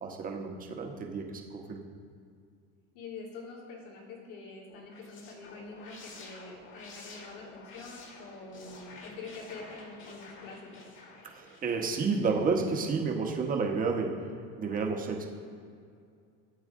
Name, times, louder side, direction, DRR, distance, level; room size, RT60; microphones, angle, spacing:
voice 1, 0.0-1.8 11.2-14.2 14.6-15.3, right 4 dB, 30° right, 2 dB, 1.2 m, -31 dB
voice 2, 2.9-10.8, left 3 dB, 85° left, -4 dB, 2.9 m, -45 dB
sound 1, 4.7-12.8, left 3 dB, 40° left, 1.8 m, -51 dB
12.5 x 8.0 x 3.7 m, 2.3 s
cardioid pair, 130°, 30 cm